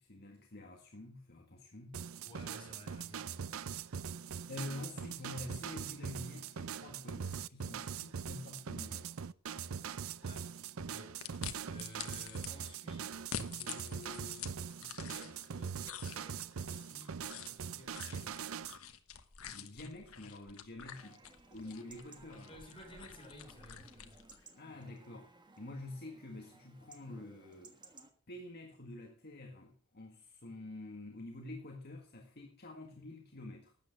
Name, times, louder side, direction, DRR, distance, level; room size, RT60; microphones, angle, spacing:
voice 1, 0.0-2.0 4.5-9.1 19.5-22.6 24.5-25.3 25.6-27.8 28.3-33.7, left 2 dB, 50° left, 1.8 m, -48 dB
sound 1, 1.9-18.8, right 7 dB, 75° right, 0.5 m, -42 dB
voice 2, 2.2-3.8 10.2-18.5 22.5-24.2 24.7-25.0, left 1 dB, 25° left, 4.0 m, -55 dB
sound 2, 11.2-12.5 13.1-15.5 15.8-24.4, left 8 dB, 85° left, 1.2 m, -48 dB
Chatter / Livestock farm animals working animals / Chirp tweet, 20.9-28.1, right 3 dB, 20° right, 1.5 m, -60 dB
12.5 x 8.5 x 6.6 m
head